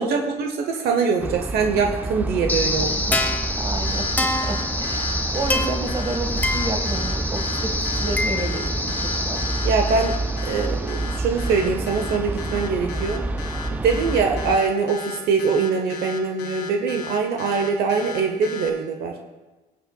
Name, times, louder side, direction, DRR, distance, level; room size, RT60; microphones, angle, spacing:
voice 1, 0.0-2.9 9.6-10.1 10.4-13.2 13.7-19.1, right 5 dB, 70° right, 3 dB, 0.9 m, -23 dB
sound 1, 1.2-14.6, right 2 dB, 10° right, 0.3 m, -28 dB
sound 2, 2.5-11.5, left 2 dB, 10° left, 1.0 m, -27 dB
voice 2, 2.9-3.2 3.6-9.4, right 2 dB, 30° right, 4 dB, 1.5 m, -31 dB
sound 3, 3.8-18.7, left 6 dB, 85° left, 1.5 m, -36 dB
20.0 x 7.6 x 2.3 m, 1.2 s
cardioid pair, 110°, 17 cm